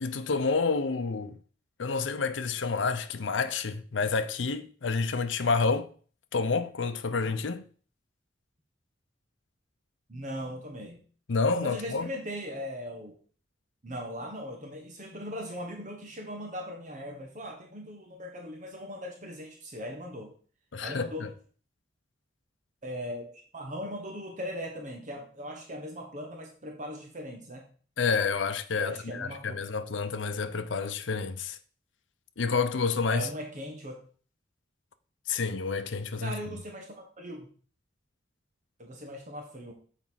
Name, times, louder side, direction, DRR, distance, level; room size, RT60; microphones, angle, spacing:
voice 1, 0.0-1.3 1.8-5.9 6.3-7.6 11.3-12.1 20.7-21.3 28.0-31.6 32.4-33.3 35.3-36.3, left 4 dB, 75° left, 0.6 m, -29 dB
voice 2, 10.1-11.0 11.6-13.2 13.8-20.3 20.8-21.3 22.8-27.6 28.8-29.5 33.1-34.0 36.2-37.5 38.8-39.7, equal, 40° right, 1.4 m, -39 dB
7.2 x 4.5 x 5.7 m
head